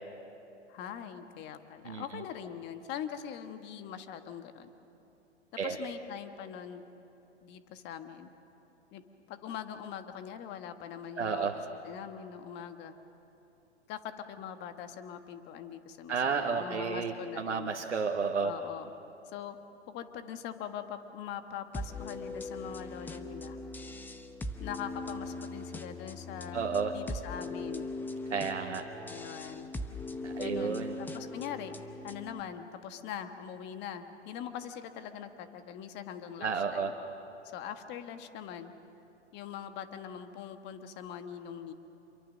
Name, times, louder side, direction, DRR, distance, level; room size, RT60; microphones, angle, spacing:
voice 1, 0.7-4.7 5.6-6.8 7.4-8.3 8.9-9.0 9.3-11.5 11.8-12.9 13.9-17.7 18.4-18.9 19.3-19.6 19.9-23.6 24.6-26.6 26.9-27.9 29.1-29.7 30.4-31.7 32.0-36.9 37.5-38.7 39.3-41.7, left 9 dB, 30° left, 8 dB, 1.4 m, -42 dB
voice 2, 11.2-11.5 16.1-18.5 26.5-26.9 28.3-28.8 30.2-30.9 36.4-36.9, right 5 dB, 90° right, 1 dB, 1.6 m, -31 dB
sound 1, 21.7-32.4, left 2 dB, 5° left, 0.8 m, -40 dB
27.5 x 23.0 x 6.5 m, 2.9 s
hypercardioid pair, 120°, 34 cm